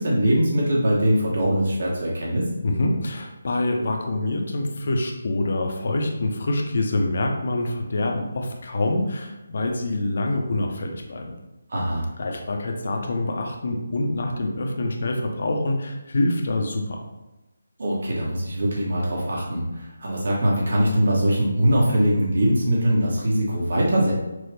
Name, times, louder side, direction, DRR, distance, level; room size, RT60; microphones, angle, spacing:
voice 1, 0.0-2.5 11.7-12.1 17.8-24.1, equal, 55° right, -4 dB, 1.2 m, -22 dB
voice 2, 2.6-11.2 12.2-17.0, left 2 dB, 55° left, 3 dB, 0.7 m, -25 dB
6.0 x 2.0 x 3.3 m, 1.0 s
figure-of-eight pair, 165°, 0 cm